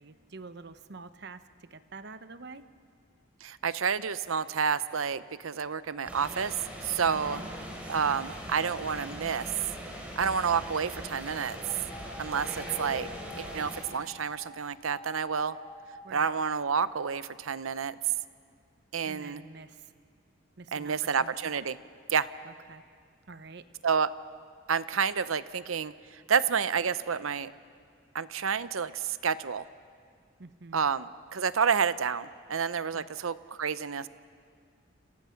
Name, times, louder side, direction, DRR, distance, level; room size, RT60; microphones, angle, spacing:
voice 1, 0.0-2.7 7.1-7.5 12.6-12.8 16.0-16.3 19.0-19.9 20.6-21.5 22.4-22.8 23.3-23.7 30.4-30.8 32.9-33.1, right 3 dB, 55° right, 12 dB, 0.9 m, -47 dB
voice 2, 3.4-6.5 6.8-7.4 7.9-9.5 10.2-11.6 12.2-13.1 13.4-15.6 16.1-18.0 18.9-19.4 20.7-21.8 22.1-22.3 23.8-24.1 24.7-27.5 28.1-29.6 30.7-34.1, right 6 dB, 85° right, 15 dB, 0.7 m, -29 dB
sound 1, 6.1-13.8, equal, 10° right, 4.2 m, -41 dB
sound 2, 11.7-14.4 14.9-16.0 16.5-16.6, left 1 dB, 20° left, 3.9 m, -47 dB
28.5 x 28.0 x 5.9 m, 2.2 s
head